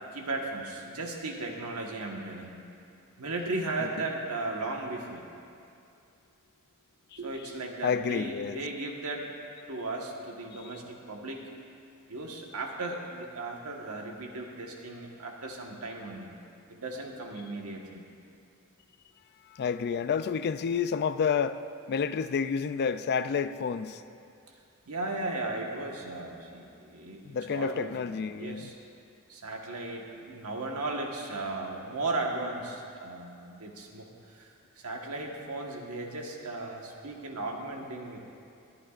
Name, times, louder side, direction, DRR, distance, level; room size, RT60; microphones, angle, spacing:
voice 1, 0.1-2.6 3.2-5.2 7.1-9.3 9.7-11.4 12.1-16.3 16.7-18.0 24.9-28.7 29.3-38.2, right 2 dB, 80° right, 1 dB, 1.4 m, -36 dB
voice 2, 7.8-8.6 19.5-21.6 21.9-24.0 27.3-28.7, left 6 dB, 45° left, 12 dB, 0.3 m, -29 dB
21.5 x 10.0 x 2.5 m, 2.5 s
head